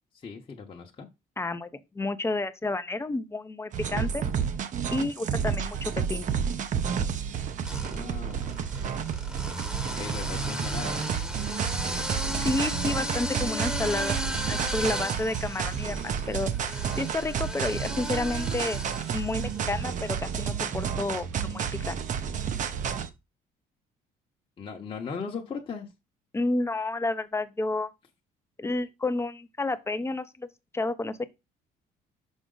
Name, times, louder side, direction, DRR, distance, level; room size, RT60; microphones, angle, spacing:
voice 1, 0.2-1.1 7.6-8.6 10.0-11.0 24.6-25.9, left 5 dB, 30° left, 1.0 m, -38 dB
voice 2, 1.4-1.7 1.9-4.2 4.9-6.3 12.3-16.5 17.0-18.8 19.1-22.0 26.3-27.9 28.6-31.2, left 2 dB, 15° left, 0.6 m, -30 dB
sound 1, 3.7-23.1, right 7 dB, 50° right, 0.7 m, -31 dB
sound 2, 6.4-6.9 7.6-19.9, equal, 5° right, 1.0 m, -36 dB
6.2 x 4.9 x 3.9 m
cardioid pair, 110°, 17 cm